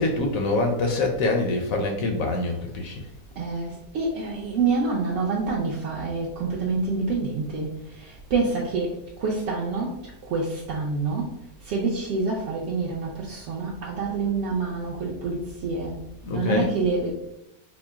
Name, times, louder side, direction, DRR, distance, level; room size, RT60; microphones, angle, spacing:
voice 1, 0.0-3.1 16.2-16.7, left 2 dB, 70° left, 3 dB, 0.9 m, -25 dB
voice 2, 3.4-7.7 8.0-8.9 9.2-9.9 10.3-11.3 11.7-16.0 16.3-17.1, right 4 dB, 65° right, -3 dB, 0.8 m, -27 dB
4.3 x 2.0 x 3.4 m, 0.84 s
omnidirectional pair, 1.6 m